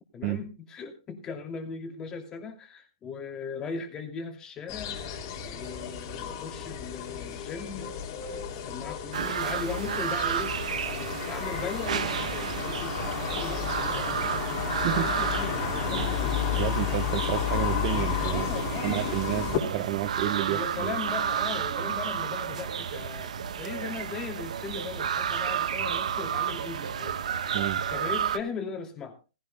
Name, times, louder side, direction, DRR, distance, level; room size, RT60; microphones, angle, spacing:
voice 1, 0.1-5.0 5.4-7.9 8.2-16.7 18.3-19.8 20.4-27.2 27.5-29.2, left 5 dB, 15° left, 4 dB, 2.8 m, -39 dB
sound 1, 4.7-19.6, left 9 dB, 35° left, 2.9 m, -32 dB
sound 2, 9.1-28.4, right 8 dB, 70° right, 1.2 m, -32 dB
sound 3, 11.8-21.9, right 6 dB, 85° right, 2.5 m, -43 dB
voice 2, 16.5-18.5 18.8-21.0 27.5-27.8, right 13 dB, 35° right, 9 dB, 1.0 m, -30 dB
19.0 x 15.5 x 2.3 m, 0.31 s
hypercardioid pair, 150°, 4 cm